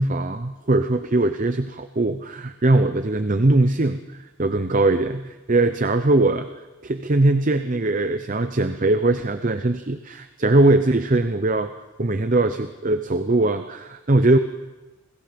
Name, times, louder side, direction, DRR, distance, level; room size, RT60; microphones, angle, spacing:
voice 1, 0.0-4.0 4.4-6.5 6.8-11.7 12.0-14.4, right 2 dB, 35° right, 9 dB, 0.7 m, -20 dB
30.0 x 21.5 x 5.2 m, 1.2 s
head